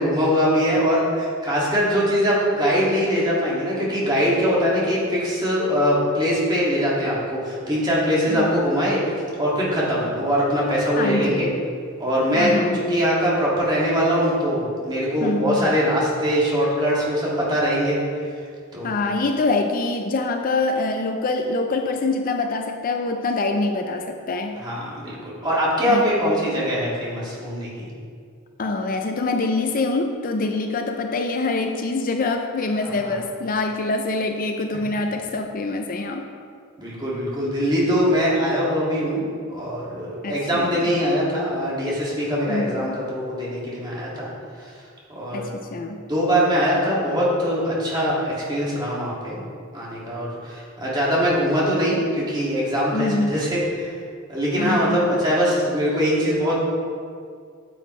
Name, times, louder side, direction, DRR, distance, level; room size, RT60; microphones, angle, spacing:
voice 1, 0.0-11.5 12.0-18.0 18.7-18.9 24.6-27.9 33.0-33.1 36.8-39.2 39.5-44.3 45.1-45.5 46.1-49.4 49.7-54.0 54.3-56.6, equal, 20° right, -7 dB, 2.1 m, -22 dB
voice 2, 11.0-11.6 12.4-13.0 15.2-15.7 18.8-24.6 25.9-26.5 28.6-36.3 40.2-40.9 42.5-42.9 45.3-46.0 52.9-53.4 54.6-55.2, left 3 dB, 40° left, 5 dB, 0.4 m, -25 dB
9.3 x 7.2 x 3.2 m, 2.2 s
head